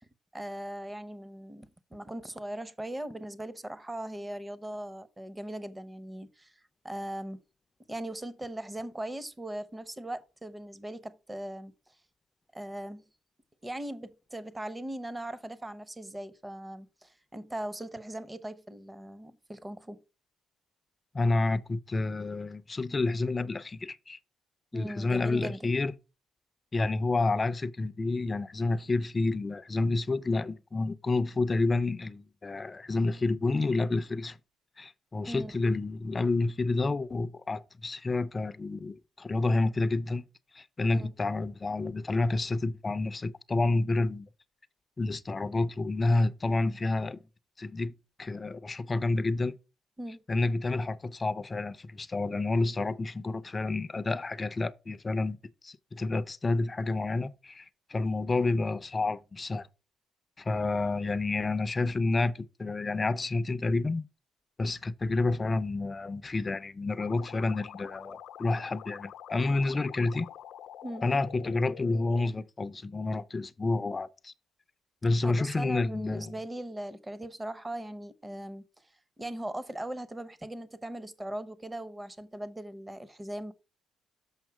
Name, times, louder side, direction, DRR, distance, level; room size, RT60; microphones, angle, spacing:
voice 1, 0.3-6.6 6.8-7.4 7.9-11.7 12.5-13.0 13.6-20.0 24.7-25.7 35.2-35.5 40.9-41.1 50.0-50.2 70.8-71.1 75.2-78.6 79.2-83.5, right 1 dB, 15° right, 0.8 m, -39 dB
voice 2, 21.1-24.2 24.7-25.9 26.7-34.4 34.8-40.3 40.5-44.3 45.0-47.2 47.6-47.9 48.2-49.6 50.3-55.4 55.6-59.7 60.4-64.1 64.6-70.3 71.0-74.3 75.0-76.3, left 3 dB, 30° left, 0.5 m, -29 dB
sound 1, 67.0-72.2, left 10 dB, 80° left, 0.6 m, -47 dB
7.2 x 5.5 x 4.6 m
cardioid pair, 90°, 0 cm